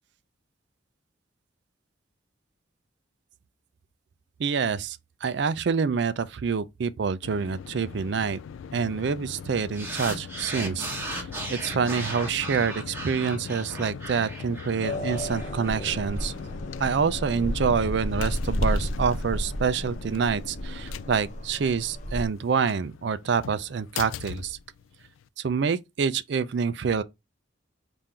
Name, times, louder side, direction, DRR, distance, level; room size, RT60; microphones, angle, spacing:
voice 1, 4.4-8.4 8.7-10.9 11.5-16.3 16.8-24.6 25.4-27.0, right 6 dB, 60° right, 0.4 m, -27 dB
sound 1, 7.2-25.3, left 7 dB, 85° left, 0.3 m, -40 dB
sound 2, 9.7-16.3, right 2 dB, 10° right, 1.0 m, -37 dB
sound 3, 14.8-22.3, equal, 35° left, 0.7 m, -32 dB
4.3 x 2.6 x 3.6 m
head